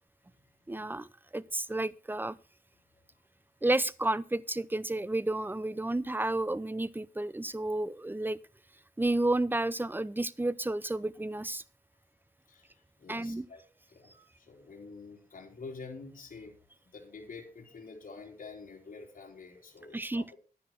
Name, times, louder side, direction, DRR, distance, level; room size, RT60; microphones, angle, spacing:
voice 1, 0.7-1.1 1.3-2.4 3.6-8.4 9.0-11.6 13.1-13.5 19.9-20.3, right 2 dB, 15° right, 18 dB, 0.6 m, -31 dB
voice 2, 12.5-13.6 13.9-16.6 16.9-20.4, left 4 dB, 70° left, -1 dB, 3.9 m, -47 dB
11.0 x 10.0 x 4.4 m, 0.35 s
cardioid pair, 70°, 15 cm